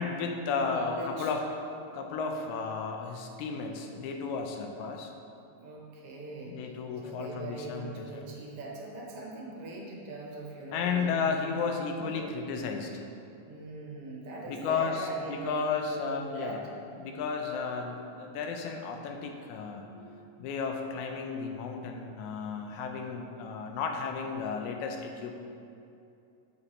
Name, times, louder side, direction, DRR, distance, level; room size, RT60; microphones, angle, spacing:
voice 1, 0.0-1.4 1.9-5.1 6.5-8.0 10.7-13.0 14.5-16.6 17.0-25.4, left 5 dB, 80° left, 3 dB, 1.9 m, -33 dB
voice 2, 0.5-1.3 5.6-6.6 7.0-11.6 11.9-12.4 13.4-16.6, right 2 dB, 65° right, -2 dB, 1.5 m, -41 dB
6.9 x 5.3 x 4.2 m, 2.7 s
omnidirectional pair, 3.4 m